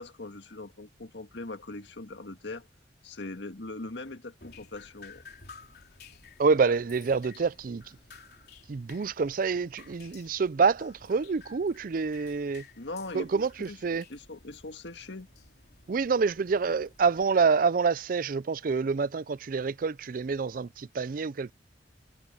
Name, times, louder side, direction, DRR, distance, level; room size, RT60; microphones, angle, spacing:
voice 1, 0.0-2.7 3.0-5.2 12.8-13.8 14.1-15.3, left 2 dB, 80° left, 1.8 m, -41 dB
Drip, 4.4-17.2, left 5 dB, 60° left, 3.9 m, -54 dB
voice 2, 6.4-7.8 8.7-12.6 13.1-14.0 15.9-21.5, right 5 dB, 50° right, 0.4 m, -27 dB
head